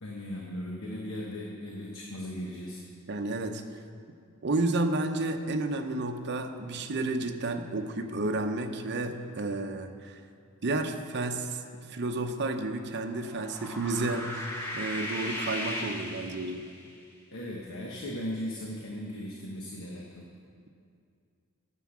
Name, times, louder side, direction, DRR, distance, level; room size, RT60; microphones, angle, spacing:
voice 1, 0.0-2.8 17.3-20.3, left 1 dB, 65° left, -2 dB, 1.1 m, -37 dB
voice 2, 3.1-3.6 4.4-10.2 10.6-11.6 11.9-16.6, right 2 dB, 50° right, 6 dB, 0.7 m, -31 dB
sound 1, 13.1-16.9, left 1 dB, 10° left, 1.6 m, -37 dB
9.6 x 7.5 x 7.3 m, 2.4 s
head